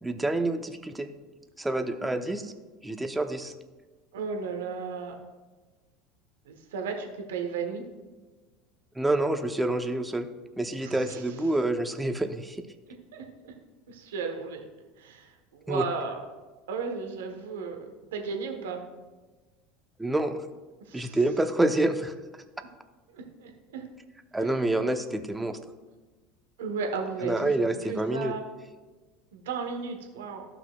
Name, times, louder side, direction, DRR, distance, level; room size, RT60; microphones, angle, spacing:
voice 1, 0.0-1.1 1.6-2.5 2.8-3.5 9.0-10.3 10.6-12.6 15.7-15.9 20.0-20.4 20.9-22.1 24.3-25.6 27.2-28.3, right 2 dB, 10° right, 7 dB, 0.7 m, -27 dB
voice 2, 2.0-2.4 4.1-5.1 6.4-7.8 10.8-11.4 13.1-13.5 13.9-14.7 15.0-16.2 16.7-18.8 20.8-21.2 23.1-23.8 24.4-24.5 26.6-27.5 27.8-28.4 29.3-30.5, right 5 dB, 80° right, 4 dB, 1.1 m, -35 dB
14.0 x 5.9 x 2.3 m, 1.3 s
hypercardioid pair, 80°, 0 cm